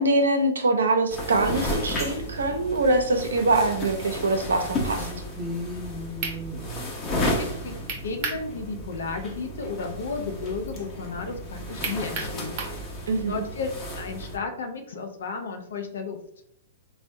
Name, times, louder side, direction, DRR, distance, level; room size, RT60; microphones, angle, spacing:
voice 1, 0.0-5.1 13.1-13.4, right 2 dB, 80° right, 5 dB, 0.5 m, -23 dB
sound 1, 1.1-14.4, left 1 dB, 25° left, 0.7 m, -33 dB
sound 2, 3.0-4.4 4.9-8.3 11.8-12.5, left 1 dB, 15° right, 0.6 m, -39 dB
sound 3, 6.2-6.4 7.9-8.5 8.8-8.9 11.8-12.8, right 4 dB, 45° right, 0.8 m, -31 dB
voice 2, 7.2-7.7 8.0-12.6 13.3-13.7 14.0-16.2, left 4 dB, 75° left, 5 dB, 0.5 m, -33 dB
3.4 x 2.1 x 2.6 m, 0.70 s
hypercardioid pair, 120°, 0 cm